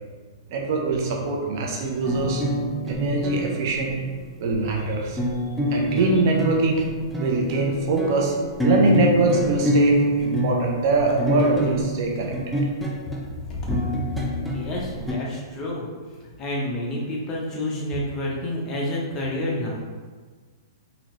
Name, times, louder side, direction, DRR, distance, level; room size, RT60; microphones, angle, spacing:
voice 1, 0.5-2.4 2.8-4.0 4.4-5.2 5.7-6.8 7.2-8.3 8.6-12.3, right 3 dB, 55° right, 0 dB, 0.7 m, -23 dB
sound 1, 2.0-15.1, equal, ahead, 0.5 m, -26 dB
voice 2, 13.5-13.9 14.5-15.9 16.4-19.8, left 1 dB, 25° left, -3 dB, 0.8 m, -29 dB
3.9 x 2.9 x 3.1 m, 1.5 s
hypercardioid pair, 135°, 2 cm